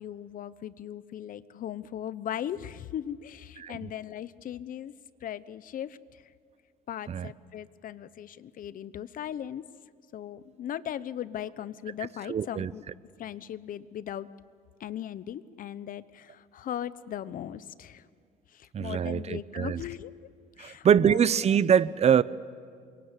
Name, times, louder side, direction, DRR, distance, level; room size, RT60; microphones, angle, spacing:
voice 1, 0.0-4.9 5.2-6.0 6.9-9.6 10.1-12.8 13.2-14.3 14.8-18.0 18.5-20.1 20.6-21.3, left 10 dB, 55° left, 16 dB, 1.0 m, -38 dB
voice 2, 3.6-3.9 7.1-7.3 12.3-12.7 18.7-19.8 20.6-22.2, right 8 dB, 40° right, 17 dB, 0.8 m, -24 dB
28.0 x 23.5 x 8.3 m, 2.2 s
cardioid pair, 110°, 17 cm